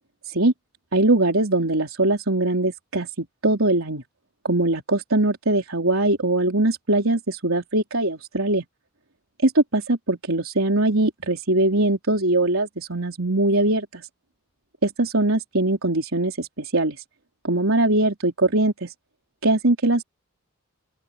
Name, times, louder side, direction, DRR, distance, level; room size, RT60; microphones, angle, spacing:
voice 1, 0.9-3.1 3.4-4.0 4.4-8.6 9.4-14.0 14.8-17.0 17.4-18.9 19.4-20.0, right 2 dB, 85° right, 3.7 m, -21 dB
open air
head